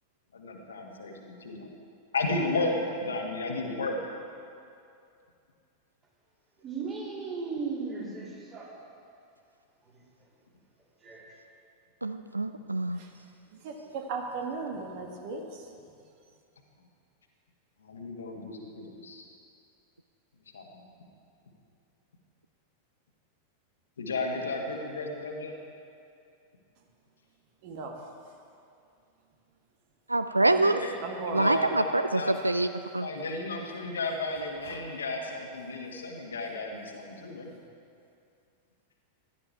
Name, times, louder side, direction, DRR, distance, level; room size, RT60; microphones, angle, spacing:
voice 1, 0.3-1.7 2.1-4.0 17.8-19.2 20.5-20.9 24.0-25.5 30.5-31.0 31.4-32.4 33.0-37.5, left 2 dB, 70° left, 1 dB, 1.7 m, -33 dB
voice 2, 6.6-8.7 11.0-11.2, right 4 dB, 25° right, -5 dB, 3.5 m, -36 dB
voice 3, 12.0-13.0 30.1-30.8 31.3-32.7 32.9-33.0, right 2 dB, 85° right, 10 dB, 0.4 m, -25 dB
voice 4, 13.6-15.4 27.6-27.9 31.0-31.5, right 4 dB, 50° right, 2 dB, 1.7 m, -36 dB
15.5 x 11.5 x 4.6 m, 2.5 s
figure-of-eight pair, 90°, 0 cm